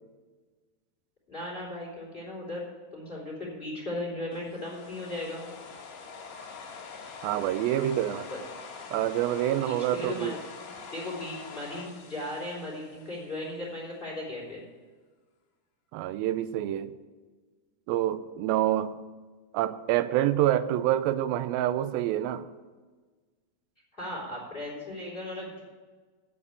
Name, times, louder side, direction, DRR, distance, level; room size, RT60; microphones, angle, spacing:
voice 1, 1.3-2.6 2.9-5.4 8.3-8.4 9.6-10.4 10.6-14.6 23.9-25.6, left 1 dB, 15° left, -3 dB, 3.0 m, -37 dB
sound 1, 4.3-13.5, left 5 dB, 65° left, 2.2 m, -45 dB
voice 2, 7.2-8.3 8.9-10.4 15.9-16.9 17.9-19.0 19.5-22.5, right 12 dB, 90° right, 13 dB, 2.4 m, -27 dB
8.3 x 7.3 x 8.3 m, 1.4 s
omnidirectional pair, 4.1 m